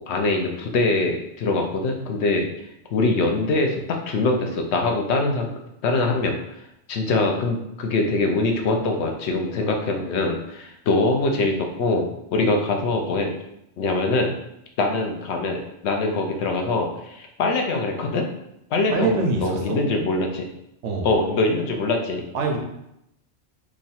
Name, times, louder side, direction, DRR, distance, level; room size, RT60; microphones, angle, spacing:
voice 1, 0.0-2.4 2.9-5.5 5.8-6.3 6.9-12.1 12.3-13.3 13.8-14.3 14.8-18.3 18.7-20.5 21.0-22.2, left 2 dB, 70° left, 3 dB, 0.9 m, -23 dB
voice 2, 18.9-19.8 20.8-21.1 22.3-22.6, right 3 dB, 80° right, 1 dB, 1.0 m, -24 dB
3.1 x 2.4 x 4.1 m, 0.81 s
omnidirectional pair, 1.2 m